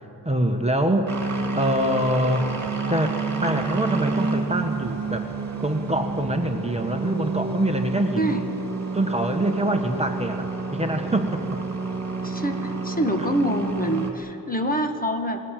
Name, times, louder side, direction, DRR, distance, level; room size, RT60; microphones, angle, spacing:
voice 1, 0.2-2.5 2.9-5.3 5.6-8.3 8.9-11.6 13.2-13.3, right 1 dB, 15° right, 4 dB, 1.3 m, -25 dB
sound 1, 1.1-14.1, right 3 dB, 40° right, 2.9 m, -29 dB
voice 2, 12.2-15.4, right 1 dB, 20° left, 5 dB, 1.6 m, -25 dB
28.0 x 19.5 x 7.6 m, 3.0 s
wide cardioid pair, 140°, 43 cm